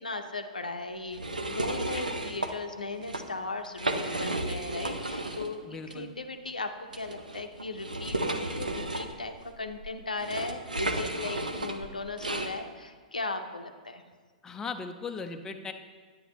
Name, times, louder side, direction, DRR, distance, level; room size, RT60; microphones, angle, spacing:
voice 1, 0.0-14.0, left 3 dB, 85° left, 6 dB, 0.6 m, -37 dB
sound 1, 1.1-2.5 2.9-3.2 3.6-5.5 5.9-6.0 6.9-12.5, right 2 dB, 85° right, 0.6 m, -33 dB
voice 2, 5.6-6.1 14.4-15.7, left 4 dB, 15° left, 5 dB, 0.5 m, -38 dB
9.2 x 9.2 x 3.0 m, 1.5 s
figure-of-eight pair, 110°, 4 cm